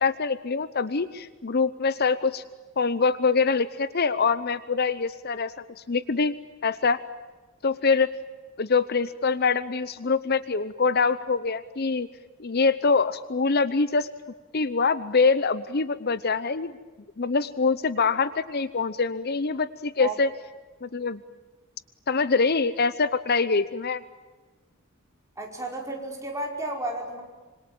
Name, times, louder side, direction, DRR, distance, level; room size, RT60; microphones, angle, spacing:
voice 1, 0.0-2.4 2.8-6.3 6.6-7.0 7.6-8.1 8.6-12.1 12.4-14.1 14.5-16.8 17.2-20.3 20.8-21.2 22.1-24.0, left 4 dB, 50° left, 15 dB, 0.8 m, -24 dB
voice 2, 25.4-27.2, right 2 dB, 15° right, 1 dB, 5.2 m, -32 dB
26.0 x 26.0 x 8.9 m, 1.3 s
head